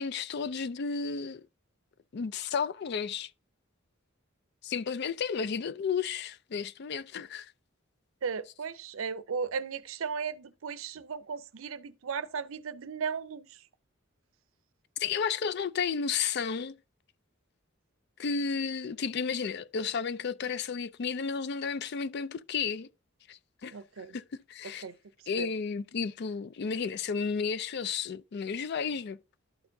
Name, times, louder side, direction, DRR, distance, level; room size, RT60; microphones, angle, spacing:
voice 1, 0.0-1.5 2.1-3.3 4.6-7.5 15.0-16.7 18.2-22.9 23.3-23.7 24.1-24.2 24.5-24.9 25.3-29.2, left 6 dB, 55° left, 0.4 m, -32 dB
voice 2, 8.2-13.5 23.7-24.2 24.8-24.9 25.4-25.5, right 6 dB, 85° right, 0.5 m, -36 dB
12.0 x 4.4 x 2.6 m
head